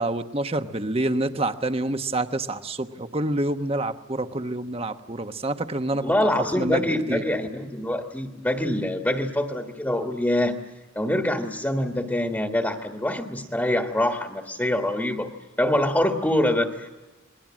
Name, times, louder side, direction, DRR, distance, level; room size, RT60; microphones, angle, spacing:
voice 1, 0.0-7.2, right 2 dB, 30° right, 8 dB, 1.1 m, -27 dB
voice 2, 6.0-10.6 10.9-15.3 15.6-16.9, left 1 dB, 10° left, 3 dB, 1.5 m, -25 dB
28.5 x 21.5 x 7.4 m, 1.2 s
head